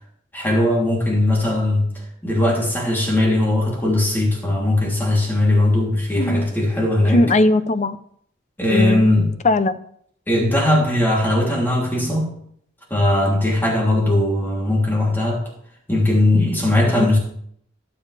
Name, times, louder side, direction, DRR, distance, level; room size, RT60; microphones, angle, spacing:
voice 1, 0.3-7.2 8.6-9.3 10.3-12.3 12.9-15.4 15.9-17.2, left 1 dB, 10° left, -3 dB, 3.2 m, -19 dB
voice 2, 7.1-8.0 8.7-9.1 9.4-9.8 16.8-17.1, left 2 dB, 40° left, 12 dB, 0.7 m, -19 dB
19.0 x 7.1 x 3.4 m, 0.67 s
head